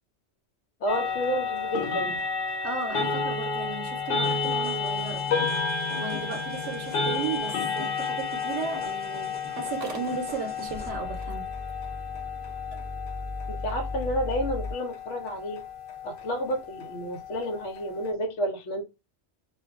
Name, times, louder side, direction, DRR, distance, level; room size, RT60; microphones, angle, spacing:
voice 1, 0.8-2.2 13.5-15.6 16.0-18.8, equal, 85° left, 1.0 m, -30 dB
sound 1, 0.9-18.1, left 5 dB, 60° left, 0.7 m, -31 dB
voice 2, 2.6-5.3 5.9-11.5, right 5 dB, 80° right, 0.9 m, -35 dB
sound 2, 4.2-10.9, left 3 dB, 10° left, 0.6 m, -44 dB
Motor vehicle (road) / Engine starting, 9.8-14.7, left 2 dB, 50° right, 0.5 m, -37 dB
2.4 x 2.2 x 2.3 m
omnidirectional pair, 1.2 m